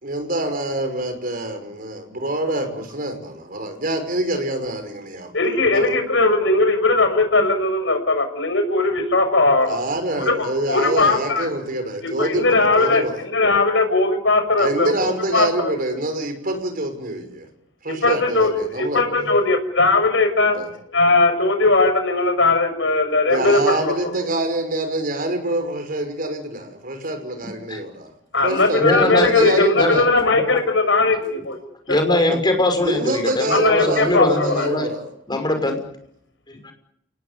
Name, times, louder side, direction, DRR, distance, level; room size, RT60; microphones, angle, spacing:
voice 1, 0.0-5.4 5.7-5.9 9.7-13.2 14.6-17.5 17.8-19.0 20.5-20.7 23.3-28.1 28.4-30.1 32.3-32.4 32.8-35.1, right 1 dB, 50° right, 7 dB, 6.0 m, -25 dB
voice 2, 5.3-9.8 10.2-11.5 12.0-15.7 18.0-20.6 20.9-24.1 28.3-31.6 31.9-32.2 33.5-34.7, left 3 dB, 70° left, 7 dB, 6.6 m, -19 dB
voice 3, 28.8-30.0 31.9-34.9 35.3-35.8 36.5-36.7, left 1 dB, 25° left, 4 dB, 6.0 m, -21 dB
29.5 x 19.0 x 9.9 m, 0.74 s
head